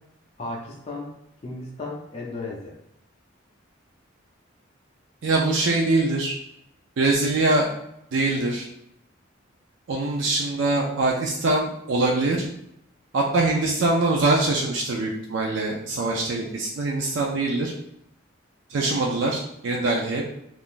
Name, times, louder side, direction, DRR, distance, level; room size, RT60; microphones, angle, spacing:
voice 1, 0.4-1.1 1.4-2.7, left 2 dB, 30° left, -3 dB, 0.4 m, -34 dB
voice 2, 5.2-6.3 7.0-7.7 8.1-8.7 9.9-12.5 13.1-17.7 18.7-20.2, right 2 dB, 65° right, -1 dB, 0.4 m, -23 dB
2.5 x 2.4 x 3.6 m, 0.79 s
head